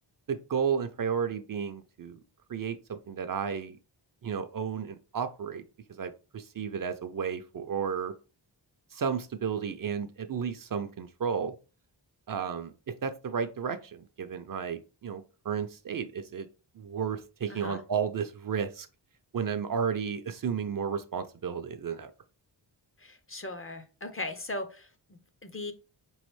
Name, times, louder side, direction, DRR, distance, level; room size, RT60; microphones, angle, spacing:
voice 1, 0.3-2.2 2.5-3.8 4.2-8.1 8.9-11.5 12.3-16.5 16.7-18.9 19.3-22.1, right 7 dB, 50° right, 8 dB, 0.4 m, -33 dB
voice 2, 23.0-25.7, left 2 dB, 30° left, 9 dB, 0.5 m, -39 dB
4.6 x 3.1 x 3.0 m, 0.33 s
wide cardioid pair, 125°, 44 cm